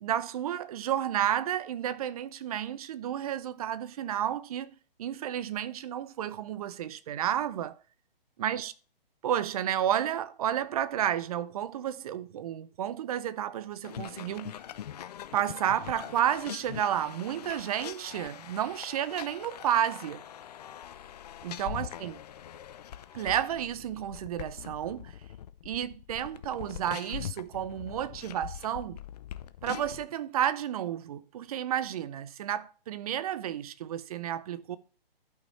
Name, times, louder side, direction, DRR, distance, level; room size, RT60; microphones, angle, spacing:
voice 1, 0.0-4.7 5.0-7.7 8.4-8.7 9.2-14.6 15.3-20.2 21.4-22.2 23.1-25.2 25.6-29.0 29.6-34.8, right 10 dB, 40° right, 0.7 m, -31 dB
sound 1, 13.8-30.1, left 10 dB, 45° left, 0.6 m, -43 dB
12.0 x 5.7 x 4.3 m
hypercardioid pair, 140°, 29 cm